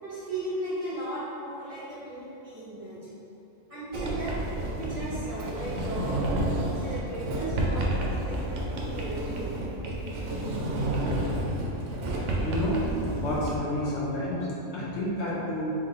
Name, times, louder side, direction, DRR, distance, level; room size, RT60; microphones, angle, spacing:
voice 1, 0.0-3.0 3.7-4.4 4.8-6.2 6.8-9.5, right 1 dB, 30° right, -11 dB, 1.1 m, -36 dB
Sliding door, 3.9-13.6, right 1 dB, 75° right, 0.9 m, -30 dB
voice 2, 12.4-12.8 13.2-15.7, left 1 dB, 65° left, -6 dB, 1.0 m, -30 dB
3.4 x 3.2 x 3.7 m, 3.0 s
omnidirectional pair, 1.3 m